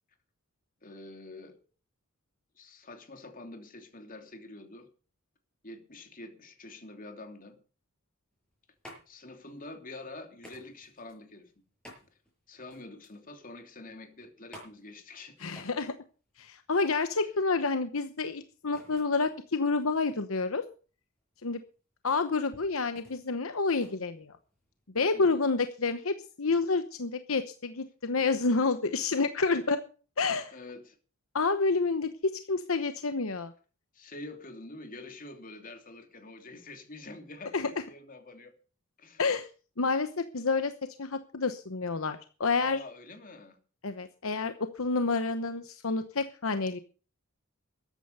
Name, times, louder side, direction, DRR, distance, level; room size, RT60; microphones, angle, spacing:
voice 1, 0.8-1.6 2.6-4.9 5.6-7.6 9.1-11.5 12.5-15.5 17.2-17.3 25.1-25.4 30.5-31.0 33.9-38.5 39.0-39.3 42.6-43.6, left 2 dB, 40° left, 5 dB, 3.0 m, -46 dB
sound 1, 8.3-24.9, equal, 5° left, 6.5 m, -56 dB
voice 2, 15.4-15.9 16.4-20.6 21.4-21.6 22.0-24.4 24.9-29.8 30.2-30.5 31.3-33.5 37.5-37.7 39.2-39.5 39.8-40.7 41.0-42.8 43.8-46.8, left 4 dB, 70° left, 9 dB, 1.0 m, -29 dB
13.5 x 10.0 x 6.8 m, 0.39 s
head